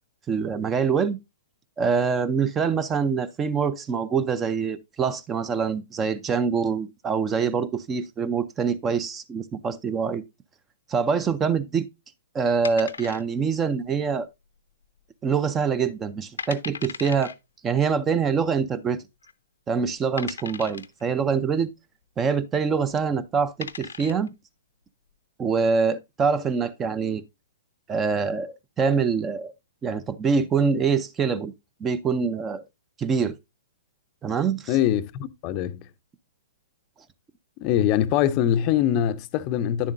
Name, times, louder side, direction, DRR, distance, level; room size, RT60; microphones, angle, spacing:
voice 1, 0.3-1.2 1.8-10.2 10.9-11.9 12.3-14.3 15.2-17.3 17.6-19.0 19.7-21.7 22.2-24.3 25.4-27.2 27.9-29.5 29.8-31.5 31.8-32.6 33.0-33.3 34.2-34.7, right 5 dB, 20° right, 0.5 m, -25 dB
sound 1, 12.6-13.6 13.9-14.0 14.6-15.0 15.4-15.5 16.0-16.1 16.4-17.3 18.4-18.5 19.2-19.3 20.2-21.0 22.8-23.0 23.4-24.3, left 6 dB, 80° left, 0.6 m, -37 dB
voice 2, 34.7-35.9 37.6-39.9, left 11 dB, 35° left, 0.5 m, -23 dB
9.7 x 7.2 x 2.5 m
hypercardioid pair, 120°, 0 cm